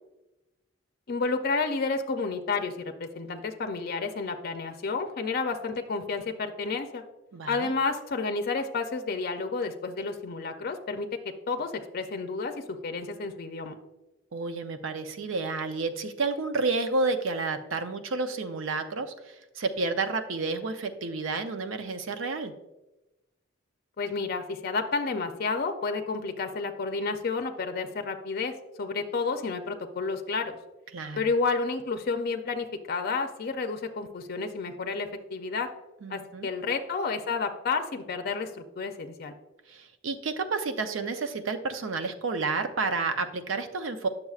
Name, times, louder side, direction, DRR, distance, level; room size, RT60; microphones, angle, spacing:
voice 1, 1.1-2.7 3.0-7.0 7.5-13.8 24.0-30.6 31.2-35.7 36.1-39.3, left 4 dB, 50° left, 6 dB, 0.5 m, -31 dB
voice 2, 7.3-7.7 14.3-22.5 30.9-31.3 36.0-36.5 39.7-44.1, right 3 dB, 85° right, 8 dB, 0.6 m, -30 dB
9.5 x 6.7 x 2.4 m, 1.0 s
head